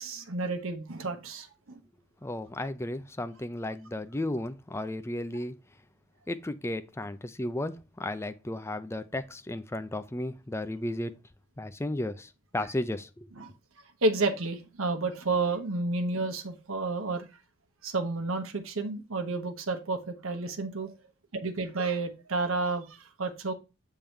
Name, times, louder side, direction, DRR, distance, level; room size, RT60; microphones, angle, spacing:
voice 1, 0.0-1.8 13.4-13.5 14.0-17.3 17.8-20.9 21.3-23.5, right 3 dB, 65° right, 1.0 m, -31 dB
voice 2, 2.2-5.6 6.3-11.1 11.6-13.3, left 1 dB, 10° left, 0.5 m, -34 dB
6.9 x 3.8 x 4.4 m
head